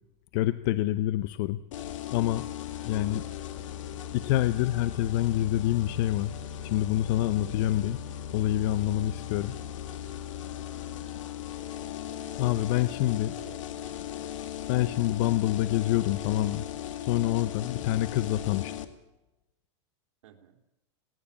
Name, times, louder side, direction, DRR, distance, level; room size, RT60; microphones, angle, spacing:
voice 1, 0.3-1.6 2.1-2.5 2.8-3.2 4.1-6.4 6.6-8.0 8.3-9.6 12.4-13.3 14.7-16.6 17.0-18.7, left 14 dB, 50° left, 13 dB, 0.8 m, -27 dB
sound 1, 1.7-18.8, left 10 dB, 80° left, 2.1 m, -38 dB
voice 2, 2.8-3.3 10.8-11.2 13.1-13.7 18.0-18.1 20.2-20.6, right 11 dB, 75° right, 6 dB, 3.5 m, -52 dB
19.0 x 17.5 x 8.5 m, 0.94 s
supercardioid pair, 150°, 16 cm